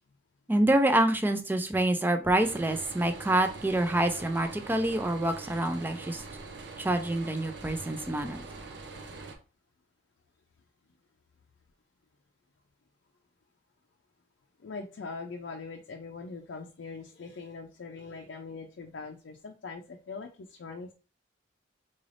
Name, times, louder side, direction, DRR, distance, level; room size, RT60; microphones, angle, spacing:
voice 1, 0.5-6.2 6.8-8.4, right 1 dB, 10° right, 7 dB, 0.4 m, -27 dB
sound 1, 2.4-9.4, right 3 dB, 65° right, 0.6 m, -44 dB
voice 2, 14.6-20.9, left 4 dB, 75° left, 2 dB, 0.4 m, -42 dB
3.9 x 3.2 x 2.5 m, 0.35 s
head